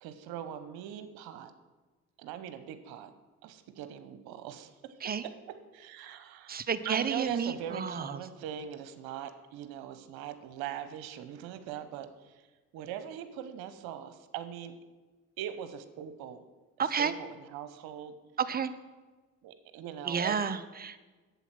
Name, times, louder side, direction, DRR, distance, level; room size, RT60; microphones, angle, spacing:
voice 1, 0.0-1.5 2.2-3.1 3.4-4.9 5.2-5.3 5.7-6.6 6.8-12.5 12.7-14.7 15.4-16.4 17.0-18.1 19.4-20.4, right 9 dB, 65° right, 10 dB, 1.0 m, -41 dB
voice 2, 6.5-8.2 16.8-17.1 18.4-18.7 20.0-21.1, right 6 dB, 25° right, 12 dB, 0.7 m, -31 dB
8.1 x 7.1 x 5.9 m, 1.3 s
hypercardioid pair, 55°, 40 cm